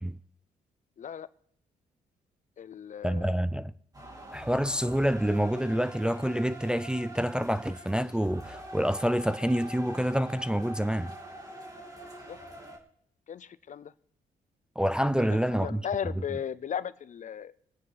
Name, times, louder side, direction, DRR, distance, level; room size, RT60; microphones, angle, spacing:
voice 1, 1.0-1.3 2.6-3.4 12.3-12.4 13.3-13.9 15.2-17.5, left 8 dB, 45° left, 0.6 m, -36 dB
voice 2, 3.0-3.7 4.3-11.1 14.8-15.8, equal, 5° right, 0.4 m, -27 dB
sound 1, 3.9-12.8, right 1 dB, 20° right, 2.5 m, -44 dB
23.0 x 9.4 x 3.4 m
supercardioid pair, 70°, 17 cm